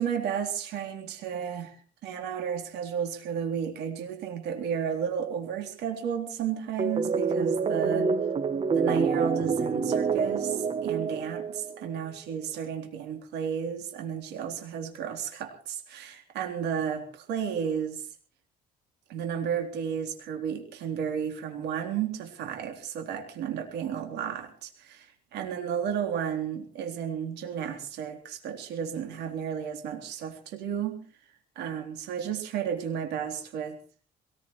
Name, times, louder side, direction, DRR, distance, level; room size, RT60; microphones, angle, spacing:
voice 1, 0.0-1.8 2.0-8.1 8.7-18.0 19.1-31.0 31.6-33.8, right 8 dB, 80° right, 4 dB, 3.8 m, -33 dB
sound 1, 6.8-11.9, right 5 dB, 35° right, 1.3 m, -27 dB
22.0 x 19.5 x 3.2 m, 0.40 s
cardioid pair, 110°, 17 cm